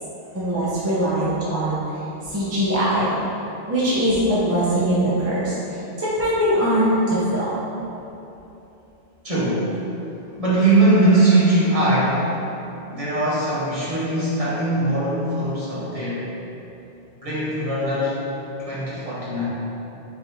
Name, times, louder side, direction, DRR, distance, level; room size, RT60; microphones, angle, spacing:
voice 1, 0.3-2.0 2.2-3.2 3.7-7.5, equal, 15° right, -10 dB, 0.6 m, -22 dB
voice 2, 9.2-9.9 10.4-12.5 12.9-16.3 17.2-18.2 18.6-19.4, right 2 dB, 35° right, -9 dB, 1.1 m, -20 dB
4.6 x 4.1 x 2.8 m, 2.9 s
omnidirectional pair, 1.1 m